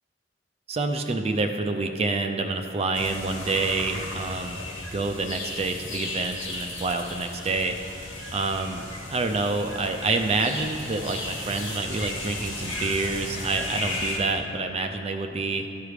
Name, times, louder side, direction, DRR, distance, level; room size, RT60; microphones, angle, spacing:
voice 1, 0.7-4.6 4.9-7.8 8.3-8.8 9.1-15.7, right 3 dB, 30° right, 6 dB, 0.4 m, -27 dB
sound 1, 2.9-14.2, left 2 dB, 85° left, 1.7 m, -35 dB
13.0 x 5.0 x 4.8 m, 2.7 s
head